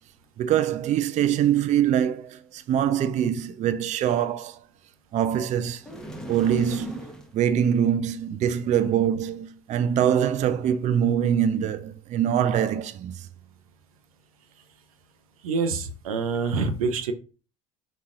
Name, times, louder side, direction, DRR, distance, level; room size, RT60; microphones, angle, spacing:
voice 1, 0.4-4.6 5.1-5.8 6.3-7.1 7.3-13.3, right 9 dB, 40° right, 0.4 m, -24 dB
sound 1, 5.8-7.4, equal, 5° left, 0.9 m, -39 dB
voice 2, 15.4-17.1, right 4 dB, 90° right, 0.6 m, -26 dB
4.0 x 2.3 x 3.7 m
hypercardioid pair, 70°, 18 cm